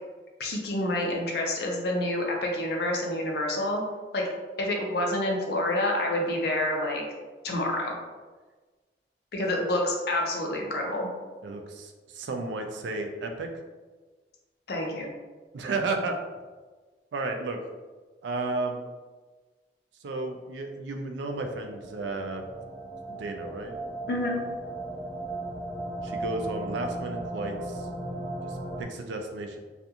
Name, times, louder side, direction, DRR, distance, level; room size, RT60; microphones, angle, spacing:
voice 1, 0.4-3.8 4.1-4.2 4.6-7.0 7.4-7.9 9.3-11.1 14.7-15.1 24.1-24.4, left 1 dB, 60° left, 0 dB, 0.5 m, -28 dB
voice 2, 11.4-13.5 15.5-16.2 17.1-17.6 18.2-18.8 20.0-22.4 23.1-23.7 26.0-27.9 28.4-29.6, right 3 dB, 90° right, 5 dB, 0.4 m, -33 dB
sound 1, 21.3-28.8, right 2 dB, 25° left, 0.9 m, -36 dB
2.4 x 2.3 x 2.7 m, 1.3 s
head